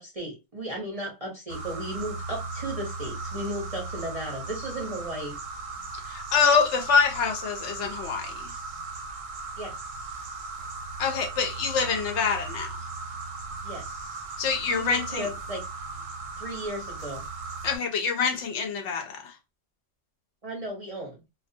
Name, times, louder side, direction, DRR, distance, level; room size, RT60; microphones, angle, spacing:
voice 1, 0.0-5.4 9.6-9.7 13.6-13.9 14.7-15.6 16.4-17.2 20.4-21.2, right 1 dB, 40° right, 0.6 m, -35 dB
sound 1, 1.5-17.8, right 3 dB, 85° right, 1.0 m, -37 dB
voice 2, 6.1-8.5 11.0-12.7 14.4-15.3 17.6-19.3, left 5 dB, 70° left, 0.8 m, -25 dB
2.3 x 2.2 x 2.6 m
omnidirectional pair, 1.3 m